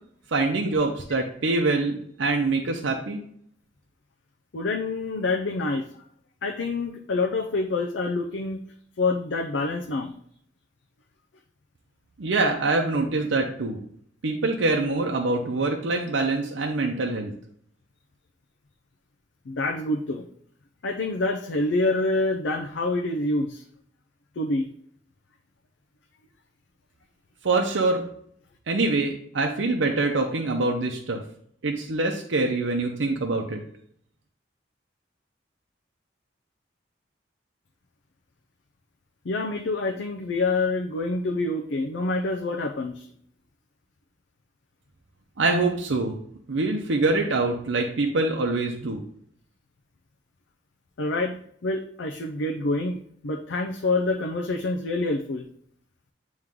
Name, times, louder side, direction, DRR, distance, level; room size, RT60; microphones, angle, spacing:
voice 1, 0.3-3.2 12.2-13.8 14.2-17.3 27.4-28.0 28.7-31.2 31.6-33.6 45.4-46.2 46.5-49.0, right 3 dB, 85° right, 2 dB, 0.7 m, -24 dB
voice 2, 4.5-5.8 6.4-8.6 9.0-10.1 19.5-20.2 20.8-23.6 24.4-24.7 39.2-43.1 51.0-53.0 53.2-55.4, left 2 dB, 85° left, 2 dB, 0.5 m, -26 dB
9.1 x 3.1 x 3.6 m, 0.65 s
head